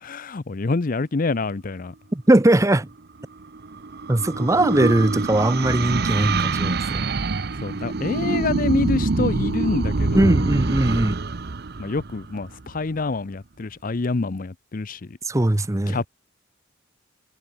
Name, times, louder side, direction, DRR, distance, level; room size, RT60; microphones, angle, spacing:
voice 1, 0.0-1.9 7.6-10.4 11.8-15.2 15.9-16.1, left 3 dB, 45° left, 0.6 m, -26 dB
voice 2, 2.1-2.9 4.1-7.0 10.1-11.2 15.3-16.0, right 1 dB, 15° right, 0.7 m, -20 dB
sound 1, 3.2-12.8, right 3 dB, 55° right, 0.8 m, -25 dB
head